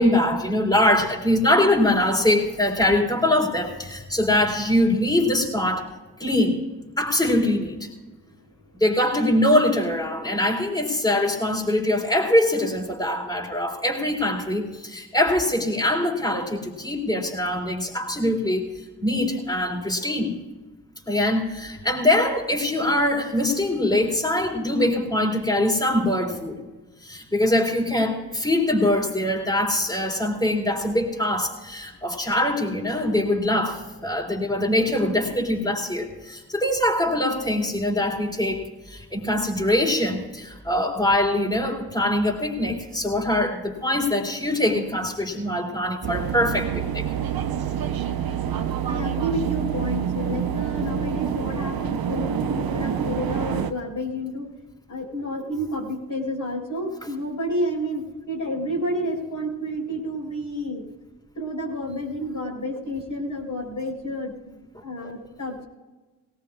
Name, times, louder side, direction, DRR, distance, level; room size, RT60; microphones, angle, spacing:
voice 1, 0.0-5.9 6.2-6.6 7.0-7.9 8.8-18.7 19.0-20.4 21.1-26.6 27.0-47.1 65.0-65.1, left 1 dB, 10° left, -2 dB, 4.1 m, -23 dB
voice 2, 45.7-46.1 48.9-54.5 54.9-60.8 61.3-65.7, equal, 45° left, -1 dB, 5.0 m, -30 dB
sound 1, 46.0-53.7, right 8 dB, 55° right, 1.0 m, -27 dB
20.0 x 18.0 x 2.5 m, 1.2 s
supercardioid pair, 40°, 43 cm